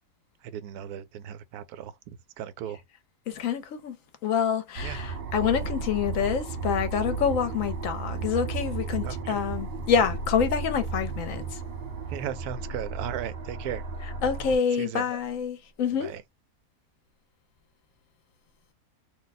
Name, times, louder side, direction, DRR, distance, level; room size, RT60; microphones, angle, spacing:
voice 1, 0.4-1.9 2.4-2.8 4.8-5.1 9.0-9.4 12.1-13.8 14.7-15.1 16.0-16.2, right 9 dB, 80° right, 1.1 m, -36 dB
voice 2, 3.3-4.0 4.2-11.6 14.2-16.1, left 7 dB, 65° left, 0.9 m, -27 dB
sound 1, 4.8-14.6, right 4 dB, 50° right, 0.8 m, -34 dB
2.7 x 2.1 x 4.0 m
omnidirectional pair, 1.6 m